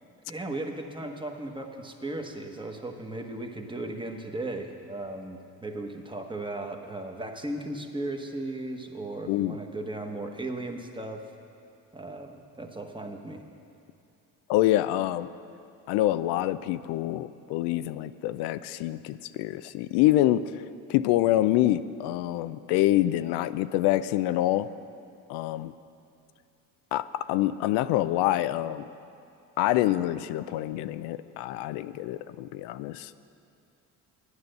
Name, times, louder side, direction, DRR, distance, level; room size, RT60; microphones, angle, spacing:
voice 1, 0.3-11.3 11.9-13.4, right 2 dB, 10° right, 4 dB, 1.2 m, -36 dB
voice 2, 9.3-9.6 14.5-15.3 15.9-20.4 20.9-24.7 25.3-25.7 26.9-28.8 29.6-33.1, left 14 dB, 85° left, 13 dB, 0.5 m, -26 dB
10.0 x 9.8 x 6.6 m, 2.6 s
supercardioid pair, 80°, 39 cm